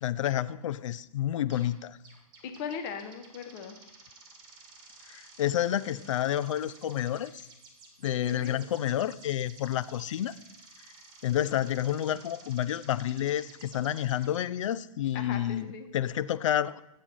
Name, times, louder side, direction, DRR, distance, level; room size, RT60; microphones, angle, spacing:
voice 1, 0.0-2.0 5.1-7.5 8.0-10.4 11.2-16.8, left 11 dB, 55° left, 17 dB, 0.4 m, -29 dB
sound 1, 1.5-1.8 2.0-14.4, right 3 dB, 20° right, 1.5 m, -53 dB
voice 2, 2.4-3.8 8.2-8.6 15.1-15.9, left 6 dB, 30° left, 7 dB, 1.0 m, -39 dB
8.3 x 3.7 x 6.1 m, 0.88 s
hypercardioid pair, 140°, 20 cm